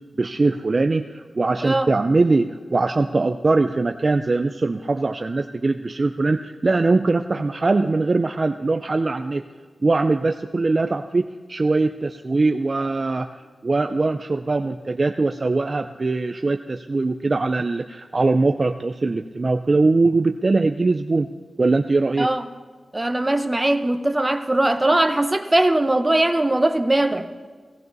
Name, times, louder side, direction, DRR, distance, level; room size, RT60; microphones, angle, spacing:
voice 1, 0.2-9.5 9.8-13.3 13.6-21.3 21.6-22.3, right 3 dB, 40° right, 7 dB, 0.5 m, -21 dB
voice 2, 22.9-27.3, right 1 dB, 20° right, 7 dB, 1.0 m, -20 dB
17.5 x 15.0 x 4.0 m, 1.5 s
wide cardioid pair, 80°, 0 cm